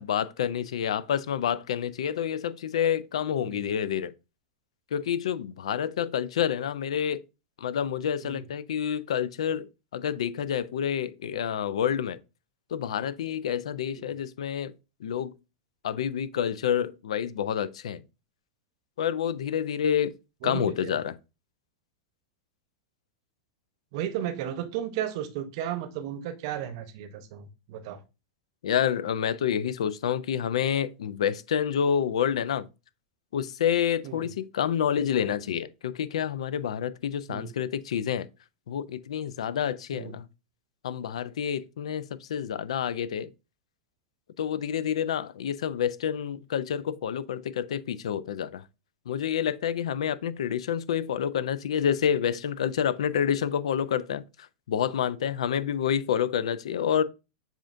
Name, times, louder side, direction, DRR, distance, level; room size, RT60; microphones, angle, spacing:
voice 1, 0.0-4.1 4.9-7.2 7.6-12.2 12.7-14.7 15.0-15.3 15.8-18.0 19.0-20.1 20.4-21.1 28.6-32.7 33.3-38.3 38.7-40.3 40.8-43.3 44.4-48.6 49.1-57.0, left 8 dB, 75° left, 0.4 m, -28 dB
voice 2, 20.4-20.9 23.9-28.0 34.0-34.3 37.3-37.5 39.9-40.1, right 10 dB, 60° right, 0.8 m, -34 dB
7.3 x 2.5 x 2.5 m
hypercardioid pair, 105°, 3 cm